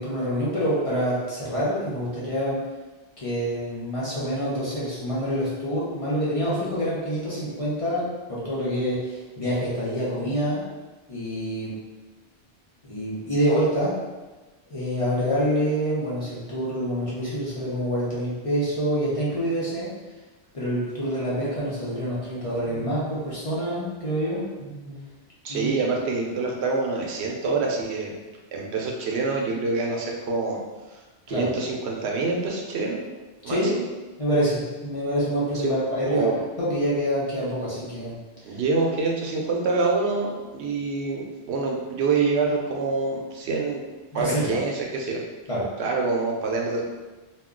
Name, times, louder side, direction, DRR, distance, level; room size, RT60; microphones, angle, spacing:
voice 1, 0.0-2.7 3.2-10.6 11.1-11.8 12.8-14.0 14.7-19.9 20.5-25.0 25.5-25.8 31.3-31.5 33.5-33.7 34.2-36.3 36.6-38.2 38.5-38.6 43.5-43.6 44.1-44.6 45.5-45.7, equal, 35° left, -8 dB, 0.7 m, -26 dB
voice 2, 25.4-28.2 28.5-30.6 31.3-33.0 33.4-33.8 35.6-35.7 36.1-36.4 38.4-43.8 44.1-45.2 45.8-46.8, right 3 dB, 80° right, 0 dB, 0.8 m, -26 dB
2.3 x 2.1 x 3.6 m, 1.2 s
omnidirectional pair, 1.1 m